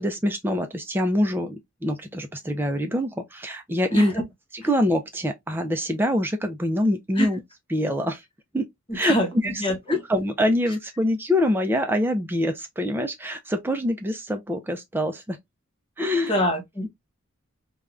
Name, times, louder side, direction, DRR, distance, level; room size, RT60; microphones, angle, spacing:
voice 1, 0.0-4.2 4.7-7.4 7.7-8.2 8.5-8.7 8.9-9.2 9.4-9.5 9.9-15.4 16.0-16.3, left 1 dB, 10° right, 0.4 m, -25 dB
voice 2, 3.9-4.2 7.2-7.3 8.9-10.0 16.3-16.9, equal, 25° left, 0.9 m, -26 dB
3.4 x 2.2 x 2.3 m
head